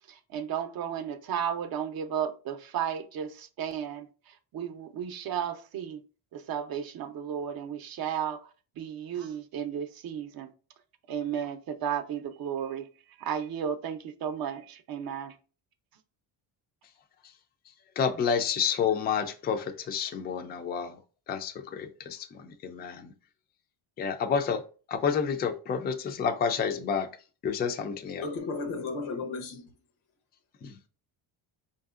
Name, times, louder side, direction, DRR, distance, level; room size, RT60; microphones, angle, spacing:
voice 1, 0.1-6.0 6.3-8.5 8.8-10.5 11.1-12.9 13.2-15.4, right 8 dB, 45° right, 0.6 m, -34 dB
voice 2, 18.0-21.0 21.3-23.1 24.0-24.6 24.9-27.1 27.4-28.3 30.6-30.7, left 6 dB, 25° left, 0.3 m, -29 dB
voice 3, 28.2-29.7, left 3 dB, 90° left, 0.9 m, -34 dB
4.8 x 2.7 x 2.4 m
cardioid pair, 105°, 49 cm